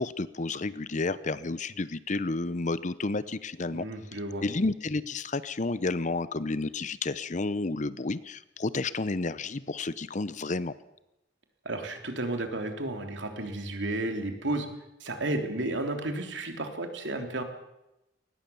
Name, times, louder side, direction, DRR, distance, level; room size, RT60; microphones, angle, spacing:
voice 1, 0.0-3.9 4.4-10.7, left 3 dB, 40° left, 16 dB, 0.7 m, -31 dB
voice 2, 3.7-4.4 11.6-14.7 15.0-17.4, right 2 dB, 65° right, 5 dB, 3.3 m, -32 dB
22.0 x 19.5 x 7.1 m, 0.92 s
head